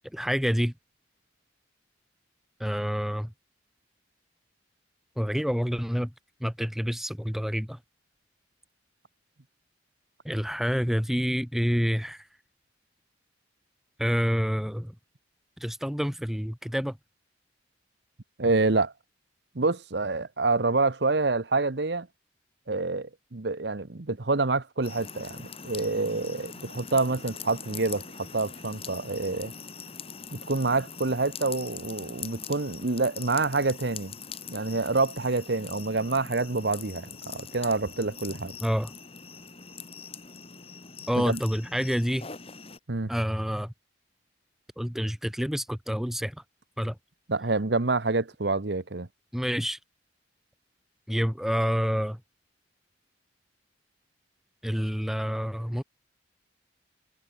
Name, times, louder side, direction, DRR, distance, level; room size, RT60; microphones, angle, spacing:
voice 1, 0.1-0.7 2.6-3.3 5.2-6.1 6.4-7.8 10.2-12.3 14.0-14.9 15.6-17.0 38.6-38.9 41.1-42.3 43.1-43.7 44.8-46.4 46.8-47.0 49.3-49.8 51.1-52.2 54.6-55.8, equal, ahead, 1.0 m, -28 dB
voice 2, 18.4-18.9 19.5-22.1 22.7-29.5 30.3-34.1 34.5-38.5 41.2-41.4 42.9-43.1 47.3-49.1, right 3 dB, 60° right, 1.0 m, -27 dB
sound 1, 24.8-42.8, left 6 dB, 30° left, 2.2 m, -43 dB
head